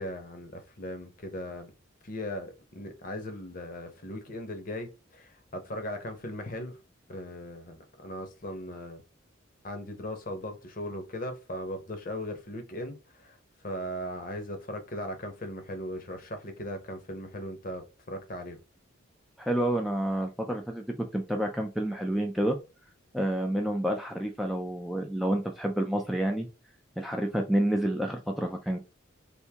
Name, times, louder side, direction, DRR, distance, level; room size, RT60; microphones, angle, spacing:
voice 1, 0.0-1.7 2.0-6.8 7.1-9.0 9.6-13.4 13.6-18.6, left 1 dB, 40° left, 0.7 m, -38 dB
voice 2, 19.4-20.8 21.1-22.6 23.1-26.5 27.0-28.8, right 1 dB, ahead, 0.3 m, -29 dB
3.4 x 2.7 x 2.8 m
head